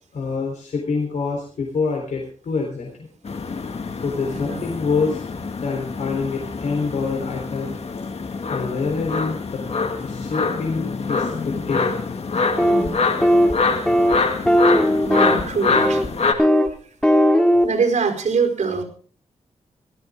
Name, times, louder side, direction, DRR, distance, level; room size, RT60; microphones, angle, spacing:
voice 1, 0.1-3.1 4.0-5.2 5.6-7.7 8.5-9.6 10.0-12.0, left 4 dB, 80° left, 0 dB, 3.8 m, -26 dB
sound 1, 3.2-16.3, left 4 dB, 60° left, 2.0 m, -25 dB
sound 2, 12.6-12.9 13.2-13.5 13.9-14.1 14.5-15.4 15.7-16.1 16.4-16.7 17.0-17.6, equal, 5° left, 2.1 m, -17 dB
voice 2, 12.6-13.0 15.0-16.0 16.6-16.7 17.6-18.8, right 5 dB, 80° right, 4 dB, 4.8 m, -23 dB
18.5 x 14.5 x 3.7 m, 0.43 s
wide cardioid pair, 95°, 12 cm